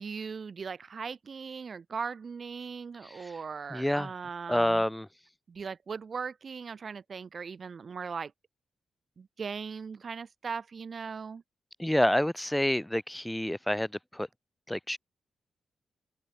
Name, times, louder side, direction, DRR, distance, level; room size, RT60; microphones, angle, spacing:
voice 1, 0.0-4.8 5.5-8.3 9.2-11.4, right 5 dB, 55° right, 4.1 m, -39 dB
voice 2, 3.0-3.4 3.7-4.1 4.5-5.1 11.8-14.3 14.7-15.0, left 1 dB, 5° left, 1.0 m, -28 dB
open air
cardioid pair, 55°, 0 cm